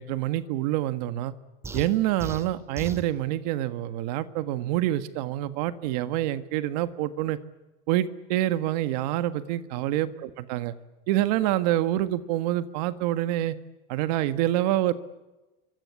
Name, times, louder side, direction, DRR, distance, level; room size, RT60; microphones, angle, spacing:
voice 1, 0.0-1.3 1.7-7.4 7.9-10.1 10.5-10.7 11.1-13.5 13.9-14.9, right 14 dB, 80° right, 12 dB, 1.6 m, -26 dB
sound 1, 1.6-3.1, right 3 dB, 15° right, 2.1 m, -37 dB
27.0 x 24.5 x 8.5 m, 1.1 s
cardioid pair, 165°, 20 cm